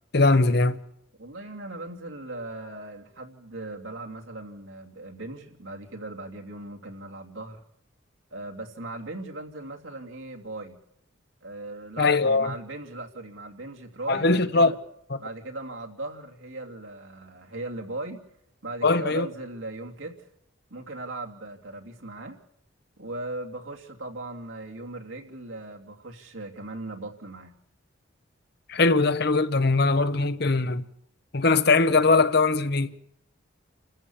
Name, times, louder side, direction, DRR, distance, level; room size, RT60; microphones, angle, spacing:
voice 1, 0.1-0.8 12.0-12.5 14.1-14.7 18.8-19.3 28.7-30.8 31.3-32.9, left 3 dB, 55° left, 1.0 m, -21 dB
voice 2, 1.2-7.6 8.3-10.8 11.4-14.8 15.2-18.2 18.6-20.3 20.7-22.4 23.0-27.5, right 2 dB, 90° right, 2.9 m, -38 dB
29.0 x 14.5 x 7.3 m
head